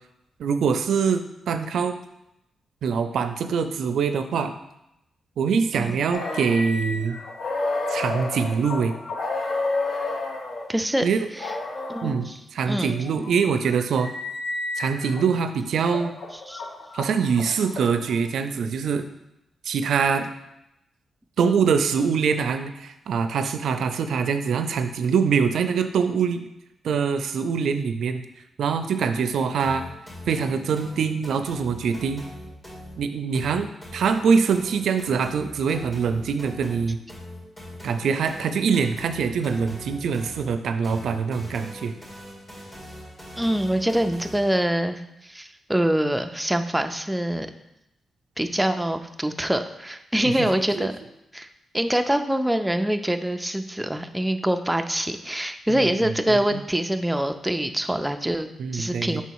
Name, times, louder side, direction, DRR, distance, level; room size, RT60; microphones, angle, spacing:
voice 1, 0.4-2.0 2.8-4.5 5.4-7.2 7.9-8.9 11.0-11.3 12.0-14.1 14.8-16.1 16.9-19.1 19.6-20.3 21.4-26.5 26.8-28.2 28.6-29.8 30.3-32.2 33.0-33.7 33.9-37.0 37.8-41.9 50.7-50.9 55.7-56.6 58.6-59.2, right 6 dB, 75° right, 9 dB, 0.4 m, -24 dB
sound 1, 6.1-10.7 11.4-12.1 12.9-15.3 15.8-18.2, left 2 dB, 55° left, 0.9 m, -31 dB
voice 2, 10.7-11.0 11.4-11.5 11.9-12.1 12.7-12.9 16.5-16.6 43.4-47.5 48.4-50.9 51.3-51.5 51.7-58.5 58.7-59.2, right 1 dB, 5° right, 7 dB, 0.4 m, -24 dB
sound 2, 29.6-44.6, equal, 20° left, 2.0 m, -42 dB
5.6 x 4.0 x 4.6 m, 0.85 s
cardioid pair, 125°, 0 cm